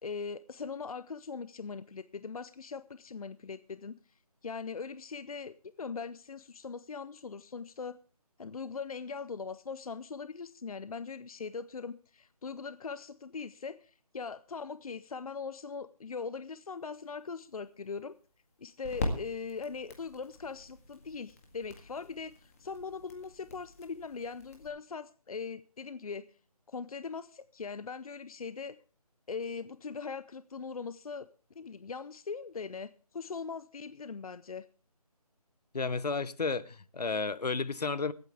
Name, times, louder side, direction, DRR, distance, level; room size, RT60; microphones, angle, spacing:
voice 1, 0.0-4.0 4.4-8.0 8.4-18.1 18.6-26.2 26.7-28.8 29.3-31.3 31.6-34.6, left 5 dB, 65° left, 0.6 m, -40 dB
sound 1, 16.8-24.7, left 2 dB, 25° left, 1.8 m, -42 dB
voice 2, 35.7-38.1, left 4 dB, 85° left, 0.9 m, -32 dB
23.5 x 9.0 x 3.4 m
figure-of-eight pair, 170°, 20 cm